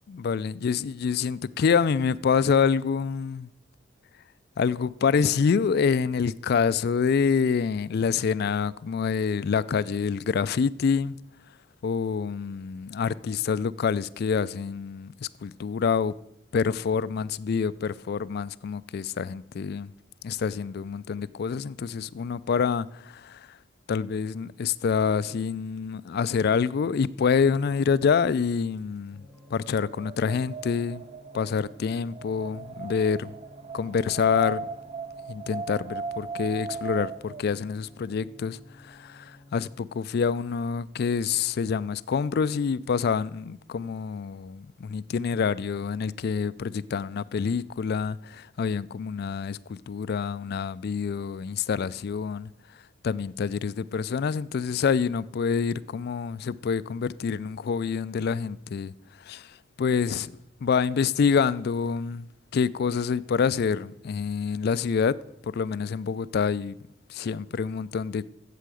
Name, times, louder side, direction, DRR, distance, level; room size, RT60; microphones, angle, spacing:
voice 1, 0.1-3.5 4.6-11.2 11.8-16.1 16.5-19.9 20.2-23.6 23.9-29.2 29.5-31.0 31.3-33.3 33.7-34.6 35.3-52.5 53.0-58.9 59.2-65.2 65.4-66.8 67.1-68.3, left 6 dB, 50° left, 0.3 m, -27 dB
sound 1, 29.1-39.8, left 1 dB, 10° left, 0.9 m, -54 dB
Wind, 29.5-37.4, right 4 dB, 30° right, 0.5 m, -38 dB
8.2 x 7.7 x 7.7 m
head